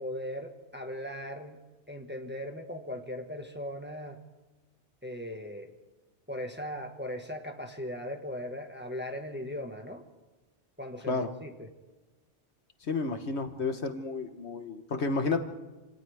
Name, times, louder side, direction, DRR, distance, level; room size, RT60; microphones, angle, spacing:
voice 1, 0.0-1.6 1.9-4.2 5.0-5.7 6.3-10.0 10.8-11.7, equal, 10° right, 3 dB, 1.5 m, -38 dB
voice 2, 12.9-15.4, left 3 dB, 65° left, 7 dB, 1.5 m, -31 dB
28.0 x 27.0 x 3.6 m, 1.2 s
omnidirectional pair, 1.2 m